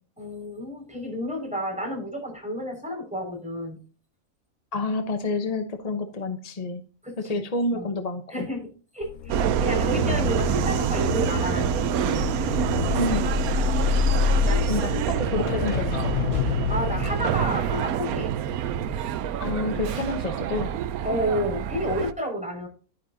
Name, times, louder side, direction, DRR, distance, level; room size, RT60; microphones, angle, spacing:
voice 1, 0.2-3.8 7.0-7.3 7.7-7.9 8.3-12.2 14.4-14.7 16.7-18.3 21.0-22.7, equal, 5° right, -1 dB, 5.6 m, -31 dB
voice 2, 4.7-6.8 7.2-8.5 13.0-13.3 14.6-16.1 19.4-20.7, left 2 dB, 30° left, 7 dB, 1.0 m, -28 dB
sound 1, 9.0-19.3 19.7-20.0, left 8 dB, 70° left, 0.9 m, -28 dB
Subway metro underground, 9.3-22.1, right 9 dB, 85° right, 1.1 m, -27 dB
11.5 x 10.0 x 2.8 m, 0.37 s
omnidirectional pair, 1.5 m